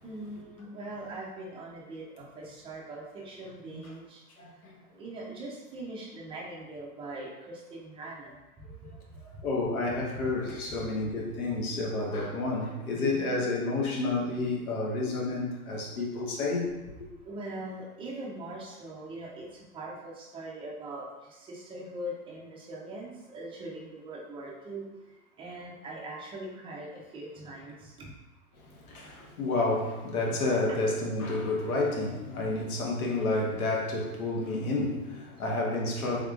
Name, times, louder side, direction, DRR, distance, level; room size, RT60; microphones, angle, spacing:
voice 1, 0.0-4.2 5.0-8.3 13.0-13.4 17.3-19.5 19.7-21.1 21.5-24.8 25.4-28.1 30.7-30.8, right 1 dB, 15° right, 0.4 m, -41 dB
voice 2, 4.4-4.7 8.7-9.0 9.2-16.7 28.6-36.2, left 2 dB, 70° left, 1.1 m, -30 dB
3.4 x 3.4 x 2.3 m
hypercardioid pair, 115°, 45 cm